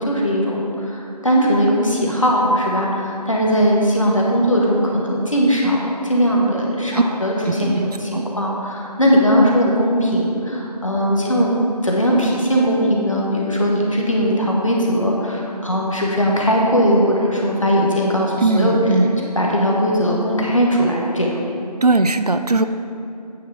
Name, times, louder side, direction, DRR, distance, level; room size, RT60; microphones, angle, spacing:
voice 1, 0.0-11.5 11.8-19.1 19.3-21.3, equal, 50° left, -2 dB, 1.5 m, -19 dB
voice 2, 7.5-8.2 18.4-19.3 21.8-22.7, right 2 dB, 70° right, 10 dB, 0.5 m, -19 dB
9.3 x 4.5 x 5.7 m, 2.7 s
figure-of-eight pair, 175°, 21 cm